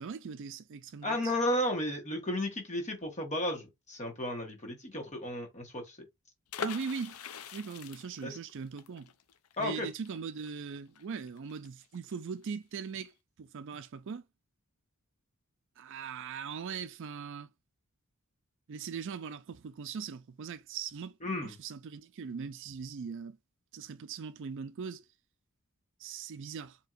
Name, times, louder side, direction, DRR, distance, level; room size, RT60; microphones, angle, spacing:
voice 1, 0.0-1.3 6.6-7.2 7.5-9.1 9.6-13.1 13.4-14.2 15.8-17.5 18.7-23.4 23.7-25.0 26.0-26.8, right 6 dB, 60° right, 0.4 m, -40 dB
voice 2, 1.0-6.0 8.2-8.4 9.6-9.9 21.2-21.5, left 1 dB, 35° left, 1.2 m, -33 dB
sound 1, 6.5-12.1 12.4-12.5 12.8-13.1, left 6 dB, 75° left, 0.5 m, -43 dB
4.3 x 2.9 x 2.4 m
head